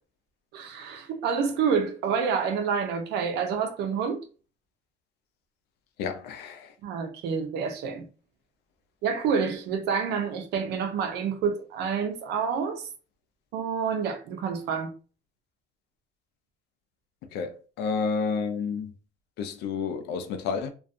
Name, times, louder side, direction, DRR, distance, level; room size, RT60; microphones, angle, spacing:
voice 1, 0.5-4.2 6.8-8.1 9.0-12.9 13.5-14.9, right 6 dB, 85° right, 0.6 m, -28 dB
voice 2, 6.0-6.7 17.3-18.9 19.4-20.7, left 5 dB, 80° left, 0.5 m, -30 dB
2.4 x 2.2 x 2.6 m
cardioid pair, 110°, 17 cm